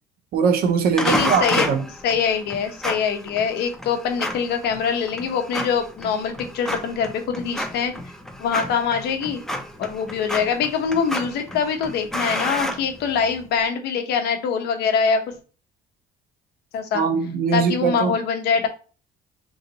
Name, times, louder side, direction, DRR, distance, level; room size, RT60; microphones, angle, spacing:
voice 1, 0.3-1.9 16.9-18.2, right 6 dB, 65° right, 0.5 m, -21 dB
voice 2, 1.0-1.7 2.0-7.9 8.4-9.4 9.8-15.3 16.7-17.0 17.5-18.7, left 6 dB, 75° left, 0.8 m, -23 dB
sound 1, 1.0-13.5, left 1 dB, 5° left, 0.5 m, -31 dB
3.1 x 2.7 x 3.8 m
cardioid pair, 110°, 17 cm